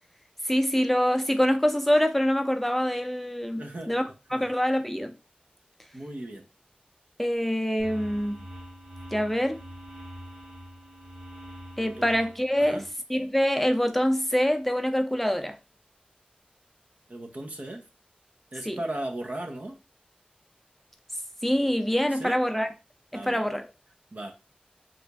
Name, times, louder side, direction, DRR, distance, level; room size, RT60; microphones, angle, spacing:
voice 1, 0.5-4.0 4.3-5.1 7.2-8.4 9.1-9.6 11.8-12.8 13.1-15.5 18.7-18.8 21.4-22.7 23.1-23.7, equal, 5° left, 0.5 m, -25 dB
voice 2, 3.6-3.9 4.3-4.5 5.9-6.5 11.8-12.1 12.6-12.8 17.1-17.8 18.5-19.8 22.1-22.4 23.1-23.5 24.1-24.3, right 1 dB, 60° right, 0.7 m, -37 dB
sound 1, 7.8-12.9, equal, 35° right, 1.1 m, -44 dB
3.0 x 2.5 x 3.4 m
wide cardioid pair, 55°, 3 cm